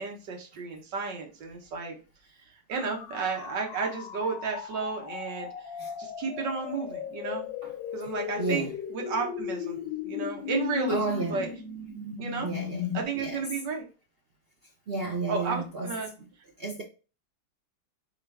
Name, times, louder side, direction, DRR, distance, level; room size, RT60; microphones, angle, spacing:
voice 1, 0.0-2.0 2.7-5.5 6.0-7.5 7.9-9.8 10.0-11.5 12.2-12.5 12.9-13.8 15.3-16.1, right 5 dB, 85° right, 1.8 m, -32 dB
sound 1, 2.7-13.0, left 9 dB, 85° left, 1.3 m, -36 dB
voice 2, 8.0-8.8 9.6-9.7 10.9-11.5 12.0-13.7 14.9-16.3 16.6-16.8, right 3 dB, 60° right, 0.6 m, -34 dB
4.0 x 3.7 x 3.3 m
omnidirectional pair, 1.9 m